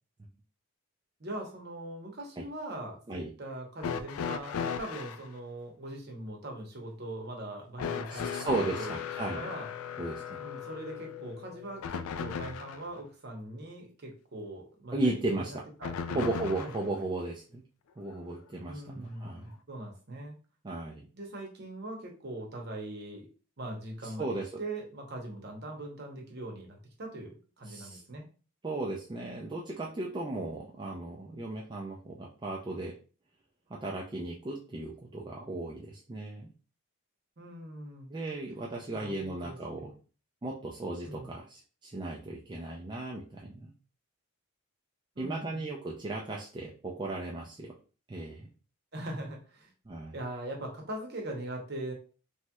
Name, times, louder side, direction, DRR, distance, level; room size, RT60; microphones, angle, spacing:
voice 1, 1.2-8.9 9.3-9.7 10.4-16.3 16.6-16.7 18.7-20.3 21.1-23.3 23.6-24.3 24.6-28.2 37.4-38.1 38.9-40.0 41.1-41.3 45.2-45.6 48.9-49.7 50.1-51.9, right 1 dB, 45° right, 1 dB, 0.8 m, -41 dB
sound 1, 3.8-5.2 7.8-12.9 15.8-16.9 18.1-18.2 19.3-19.4, left 7 dB, 75° left, 0.3 m, -37 dB
voice 2, 8.1-9.5 10.0-10.4 14.9-15.6 16.1-17.6 18.0-19.6 20.6-21.0 24.0-24.6 27.7-28.0 28.6-32.9 33.7-36.5 38.1-39.9 40.4-43.7 45.2-47.7 48.1-48.5 49.9-50.1, right 2 dB, 20° right, -3 dB, 0.3 m, -36 dB
3.1 x 2.9 x 2.2 m, 0.36 s
head